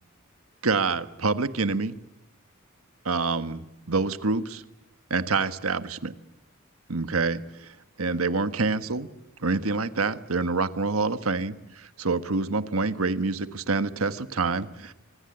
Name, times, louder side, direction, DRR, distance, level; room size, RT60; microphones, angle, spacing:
voice 1, 0.6-1.9 3.0-4.6 5.1-6.1 6.9-7.7 8.0-9.1 9.4-14.9, right 3 dB, 90° right, 11 dB, 1.4 m, -27 dB
26.5 x 26.0 x 8.0 m, 0.90 s
head